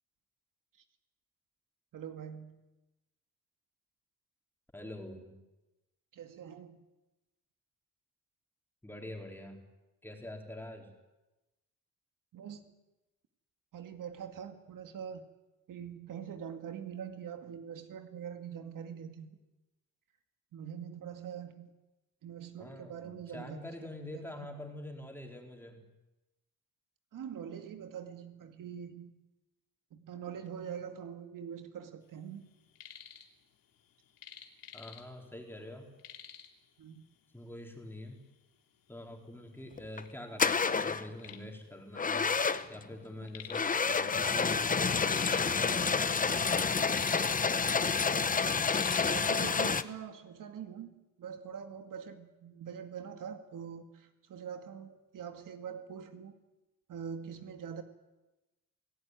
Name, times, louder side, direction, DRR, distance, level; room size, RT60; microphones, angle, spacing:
voice 1, 1.9-2.6 6.1-6.8 12.3-12.7 13.7-15.2 15.7-19.4 20.5-21.7 22.2-23.6 24.1-24.5 27.1-29.1 29.9-32.4 36.8-37.0 49.1-56.3 56.9-57.8, right 8 dB, 70° right, 6 dB, 2.2 m, -44 dB
voice 2, 4.7-5.4 8.8-9.6 10.0-10.9 22.6-25.9 34.7-35.9 37.3-38.2 38.9-42.3 42.7-46.8, left 1 dB, 5° left, 1 dB, 4.0 m, -45 dB
sound 1, 32.5-33.3 33.6-35.3 35.6-35.7 36.0-36.6 37.4-37.5 38.1-38.2 38.9-39.0 39.3-40.1 40.6-42.7 42.9-43.7 44.0-45.6 45.9-47.5 47.8-49.2, left 8 dB, 85° left, 3.0 m, -48 dB
sound 2, 39.8-40.0 40.4-41.1 42.0-42.8 43.5-49.8, left 5 dB, 25° left, 0.9 m, -29 dB
28.0 x 17.5 x 9.6 m, 1.0 s
wide cardioid pair, 160°, 33 cm